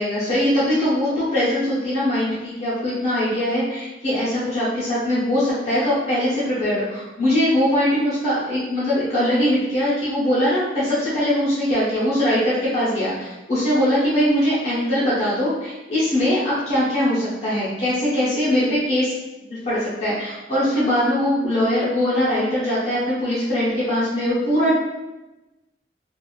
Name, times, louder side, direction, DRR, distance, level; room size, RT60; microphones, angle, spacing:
voice 1, 0.0-19.1 19.4-24.7, left 1 dB, 40° left, -10 dB, 1.0 m, -21 dB
3.5 x 2.5 x 2.4 m, 1.0 s
head